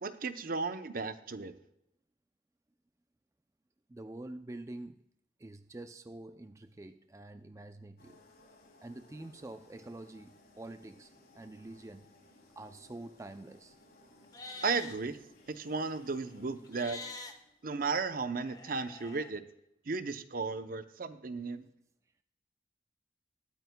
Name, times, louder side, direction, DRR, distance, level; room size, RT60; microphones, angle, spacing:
voice 1, 0.0-1.5 14.6-15.2 15.5-17.0 17.6-19.4 19.9-21.7, right 4 dB, 55° right, 11 dB, 0.7 m, -35 dB
voice 2, 3.9-5.0 5.4-8.2 8.8-12.1 12.6-13.8, right 2 dB, 15° right, 9 dB, 0.4 m, -47 dB
sound 1, 8.0-17.8, left 1 dB, 60° left, 2.9 m, -61 dB
Livestock farm animals working animals, 14.2-15.0 16.6-17.3 18.4-19.3, left 3 dB, 20° left, 1.1 m, -46 dB
20.0 x 9.2 x 2.2 m, 0.81 s
head